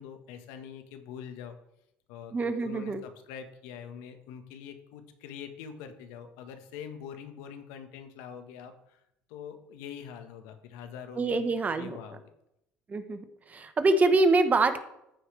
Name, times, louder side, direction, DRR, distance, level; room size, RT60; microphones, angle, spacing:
voice 1, 0.0-1.6 2.1-9.0 9.3-12.2, left 8 dB, 85° left, 7 dB, 1.2 m, -44 dB
voice 2, 2.3-3.0 11.2-12.0 12.9-14.8, right 3 dB, 30° right, 10 dB, 1.0 m, -25 dB
14.0 x 5.0 x 3.2 m, 0.80 s
supercardioid pair, 85°, 5 cm